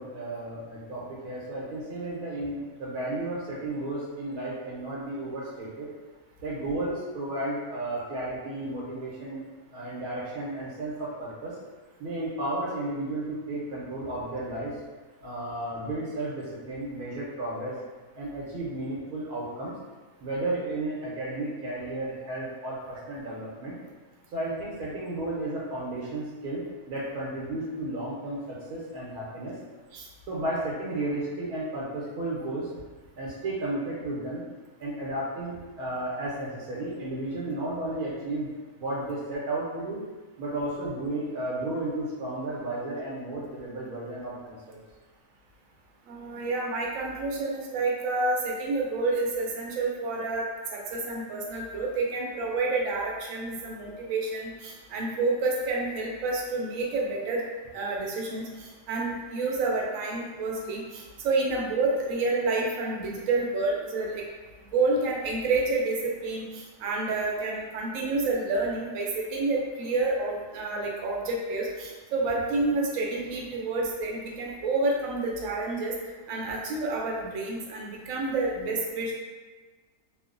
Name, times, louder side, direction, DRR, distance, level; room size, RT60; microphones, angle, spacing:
voice 1, 0.0-5.9 6.4-9.5 9.7-11.5 12.0-14.8 15.2-17.8 18.2-19.7 20.2-23.8 24.3-29.6 30.3-32.7 33.2-34.4 34.8-38.5 38.8-40.0 40.4-44.8, right 2 dB, 90° right, -6 dB, 1.2 m, -33 dB
voice 2, 46.1-57.4 57.7-64.2 64.7-75.9 76.3-79.1, right 3 dB, 70° right, -2 dB, 0.9 m, -29 dB
3.0 x 2.0 x 2.4 m, 1.3 s
omnidirectional pair, 1.6 m